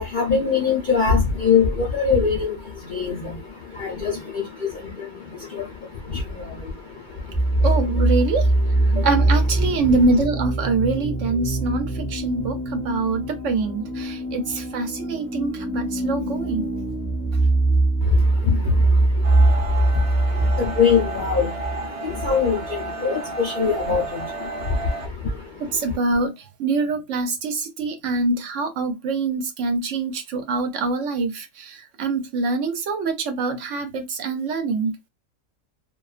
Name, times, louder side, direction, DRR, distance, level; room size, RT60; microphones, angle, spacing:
voice 1, 0.0-1.7 1.9-2.5 2.9-3.2 3.8-3.9 20.8-21.5 22.2-22.6 23.0-23.2 23.4-24.0, left 6 dB, 50° left, 0.6 m, -20 dB
sound 1, 7.3-22.9, right 2 dB, 10° right, 0.7 m, -22 dB
voice 2, 7.6-8.5 9.0-16.7 25.7-26.3 26.6-34.9, right 3 dB, 70° right, 0.9 m, -24 dB
sound 2, 19.2-25.1, right 3 dB, 50° right, 0.4 m, -33 dB
2.4 x 2.2 x 2.3 m
omnidirectional pair, 1.5 m